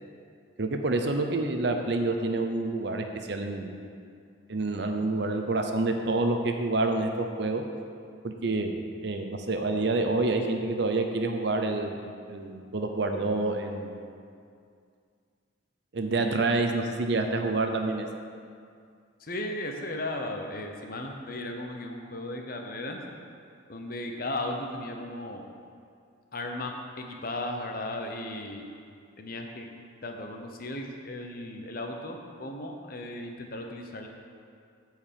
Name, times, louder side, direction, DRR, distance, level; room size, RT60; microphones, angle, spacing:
voice 1, 0.6-3.7 4.5-7.6 8.2-14.0 15.9-18.1, right 2 dB, 55° right, 5 dB, 0.7 m, -28 dB
voice 2, 19.2-23.0 23.7-25.4 26.3-28.6 29.2-29.7 30.0-34.1, left 1 dB, 45° left, 3 dB, 0.8 m, -36 dB
8.5 x 4.7 x 7.5 m, 2.3 s
head